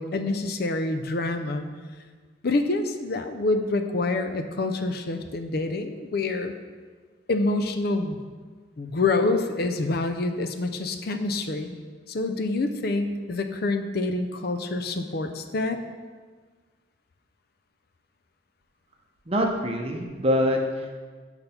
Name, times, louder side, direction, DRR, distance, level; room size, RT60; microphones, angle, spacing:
voice 1, 0.0-1.7 2.4-6.5 7.3-8.2 8.8-11.8 12.1-15.8, left 2 dB, 50° left, 7 dB, 0.5 m, -27 dB
voice 2, 19.3-21.0, equal, 30° right, 2 dB, 0.7 m, -25 dB
8.7 x 4.0 x 5.7 m, 1.5 s
head